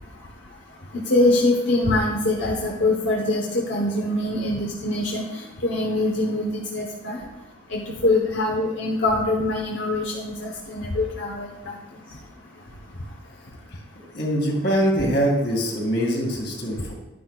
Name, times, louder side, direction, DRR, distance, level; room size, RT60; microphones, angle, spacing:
voice 1, 1.1-5.2 5.6-7.2 7.7-11.5, left 2 dB, 85° left, -2 dB, 1.1 m, -23 dB
voice 2, 14.1-16.9, equal, 60° left, 0 dB, 2.2 m, -23 dB
11.0 x 10.0 x 2.4 m, 0.98 s
head